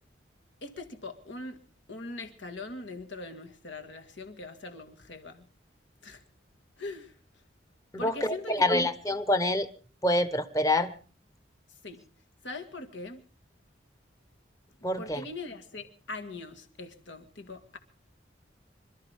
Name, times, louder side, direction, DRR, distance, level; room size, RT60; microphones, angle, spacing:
voice 1, 0.6-1.6 1.9-5.5 6.0-6.2 6.8-7.1 8.0-8.9 11.8-12.0 12.4-13.2 15.0-17.8, left 2 dB, 80° left, 5 dB, 2.2 m, -41 dB
voice 2, 7.9-9.7 10.0-10.9 14.8-15.2, left 1 dB, 20° left, 11 dB, 1.2 m, -26 dB
27.0 x 13.0 x 3.7 m, 0.40 s
head